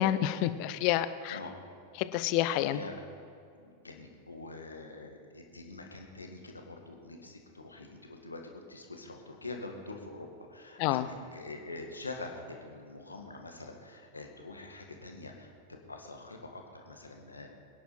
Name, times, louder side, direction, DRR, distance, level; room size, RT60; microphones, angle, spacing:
voice 1, 0.0-1.4 2.0-2.8 10.8-11.1, left 13 dB, 45° left, 13 dB, 0.7 m, -28 dB
voice 2, 2.7-3.0 3.6-11.0 11.3-17.5, left 2 dB, 80° left, 3 dB, 1.9 m, -45 dB
23.0 x 10.5 x 4.4 m, 2.4 s
figure-of-eight pair, 90°, 0 cm